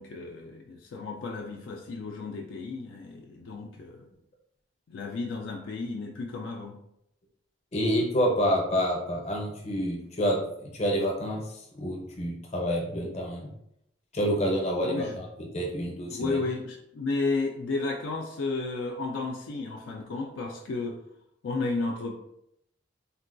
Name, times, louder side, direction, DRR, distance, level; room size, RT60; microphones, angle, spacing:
voice 1, 0.0-4.1 4.9-6.8 14.8-15.2 16.1-21.0 21.4-22.2, left 3 dB, 65° left, 0 dB, 0.3 m, -33 dB
voice 2, 7.7-11.4 11.7-13.5 14.1-15.3 15.5-16.4, equal, 35° left, -1 dB, 0.7 m, -28 dB
3.7 x 2.2 x 2.5 m, 0.77 s
head